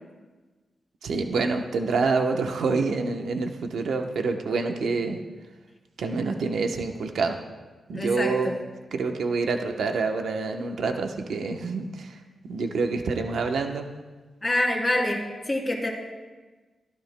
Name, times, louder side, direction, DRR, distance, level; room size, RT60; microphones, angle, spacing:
voice 1, 1.0-5.2 6.0-7.4 7.9-8.5 8.9-12.1 12.5-13.9, right 4 dB, 85° right, 4 dB, 0.9 m, -27 dB
voice 2, 7.9-8.5 14.4-15.9, left 1 dB, 20° left, -1 dB, 3.0 m, -26 dB
23.5 x 13.5 x 2.2 m, 1.3 s
wide cardioid pair, 105°, 0 cm